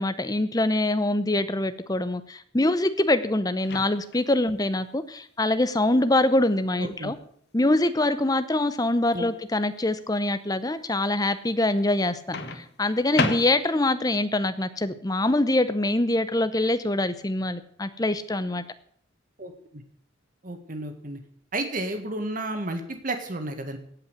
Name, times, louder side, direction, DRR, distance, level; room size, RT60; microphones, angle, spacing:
voice 1, 0.0-7.1 7.5-12.2 12.5-18.6, left 1 dB, 20° left, 12 dB, 0.7 m, -24 dB
Microwave oven, 3.6-4.3 6.3-6.5 12.3-13.9, left 3 dB, 55° left, 1.3 m, -31 dB
voice 2, 6.8-7.1 9.1-9.2 19.4-19.8 20.4-21.2 21.5-23.8, right 2 dB, 40° right, 6 dB, 1.8 m, -32 dB
16.5 x 5.5 x 8.2 m, 0.63 s
head